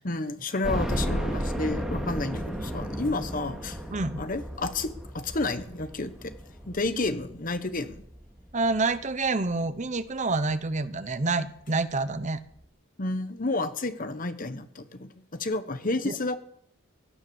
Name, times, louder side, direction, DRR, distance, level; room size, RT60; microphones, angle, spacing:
voice 1, 0.0-3.8 4.2-6.3 6.6-8.0 13.0-16.4, left 2 dB, 45° left, 10 dB, 1.2 m, -31 dB
sound 1, 0.6-9.5 10.0-10.1 10.5-10.6 11.8-11.9 12.2-12.3, equal, ahead, 2.6 m, -34 dB
voice 2, 3.9-4.2 8.5-12.4 16.0-16.2, right 3 dB, 40° right, 12 dB, 0.9 m, -27 dB
17.0 x 9.8 x 7.1 m, 0.69 s
head